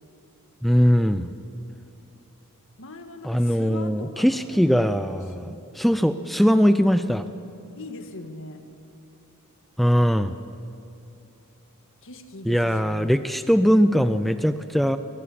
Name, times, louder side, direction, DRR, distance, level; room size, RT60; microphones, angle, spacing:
voice 1, 0.6-1.3 3.2-7.2 9.8-10.3 12.5-15.0, equal, ahead, 11 dB, 0.5 m, -21 dB
voice 2, 2.8-4.7 5.1-5.6 7.8-8.7 12.0-13.2, left 2 dB, 60° left, 7 dB, 1.8 m, -41 dB
22.5 x 17.0 x 8.5 m, 2.7 s
head